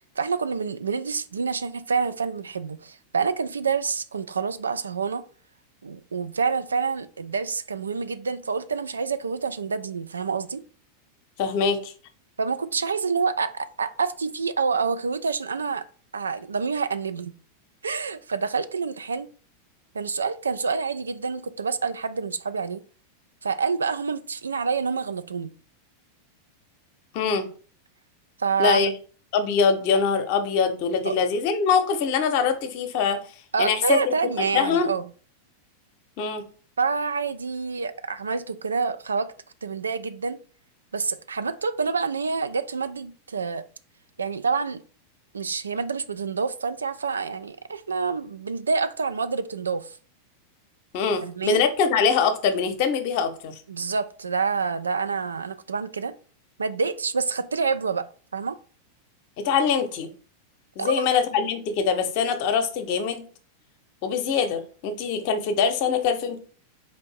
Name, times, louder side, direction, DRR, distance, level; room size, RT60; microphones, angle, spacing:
voice 1, 0.2-5.2 5.8-10.6 12.4-15.8 16.1-17.3 17.8-19.3 19.9-22.8 23.4-25.5 28.4-28.9 31.0-31.2 33.5-35.1 36.8-39.3 39.6-40.4 40.9-43.6 44.2-44.8 45.3-50.0 51.2-51.6 53.7-56.1 56.6-58.1 58.3-58.6 60.8-61.1, right 5 dB, 75° right, 0.3 m, -27 dB
voice 2, 11.4-11.9 27.1-27.5 28.6-28.9 29.3-33.2 33.6-34.9 36.2-36.4 50.9-53.6 59.4-60.1 60.8-63.2 64.0-66.4, left 6 dB, 45° left, 0.7 m, -23 dB
4.2 x 2.6 x 4.6 m
figure-of-eight pair, 90°, 0 cm